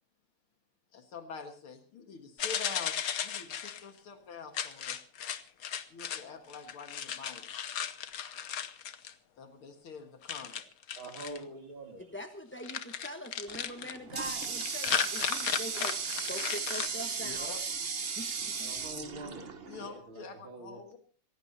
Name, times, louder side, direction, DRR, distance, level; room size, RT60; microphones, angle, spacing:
voice 1, 0.9-5.0 5.9-7.5 9.4-10.6 17.2-17.6 19.7-21.0, left 5 dB, 80° left, 5 dB, 2.5 m, -46 dB
sound 1, 2.4-3.8 4.5-6.2 6.5-9.1 10.2-11.4 12.6-14.0 14.4-16.9, left 8 dB, 55° left, 1.1 m, -35 dB
voice 2, 11.0-12.1 18.4-20.8, right 2 dB, 70° right, 3 dB, 3.7 m, -45 dB
voice 3, 12.1-17.5 18.0-18.7, left 1 dB, 10° left, 5 dB, 0.7 m, -43 dB
Water tap faucet, 13.5-20.0, right 5 dB, 35° right, 1.0 m, -36 dB
26.5 x 16.0 x 2.8 m, 0.42 s
omnidirectional pair, 2.3 m